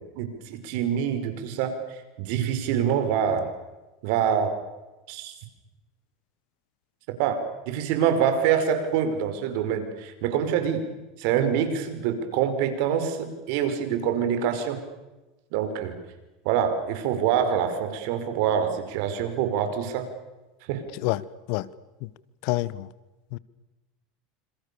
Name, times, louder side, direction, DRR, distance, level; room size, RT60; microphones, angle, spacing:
voice 1, 0.0-1.7 2.2-3.5 4.0-4.5 5.1-5.3 7.2-10.9 11.2-14.8 15.5-15.9 16.5-20.1 20.7-20.8, right 8 dB, 65° right, 5.3 m, -25 dB
voice 2, 22.4-22.9 23.3-23.4, left 19 dB, 65° left, 1.2 m, -27 dB
27.5 x 27.5 x 7.1 m
supercardioid pair, 110°, 0 cm